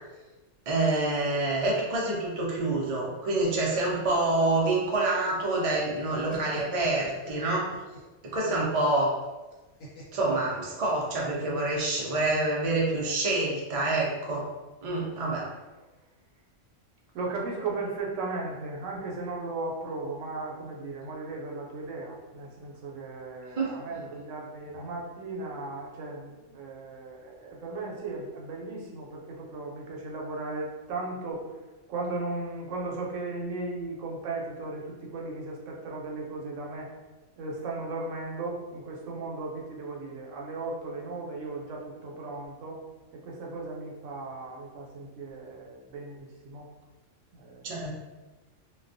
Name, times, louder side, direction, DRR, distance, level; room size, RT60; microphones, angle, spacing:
voice 1, 0.7-7.7 8.2-9.1 10.1-14.5 14.8-15.5 23.6-23.7 47.6-47.9, right 2 dB, 55° right, -4 dB, 0.4 m, -27 dB
sound 1, 3.9-5.6 5.9-8.1 9.8-11.2, equal, 70° left, 1.0 m, -45 dB
voice 2, 17.1-31.5 31.9-36.9 37.4-42.8 43.1-46.7 47.3-47.9, right 3 dB, 80° right, -2 dB, 0.9 m, -36 dB
2.2 x 2.2 x 2.5 m, 1.2 s
omnidirectional pair, 1.3 m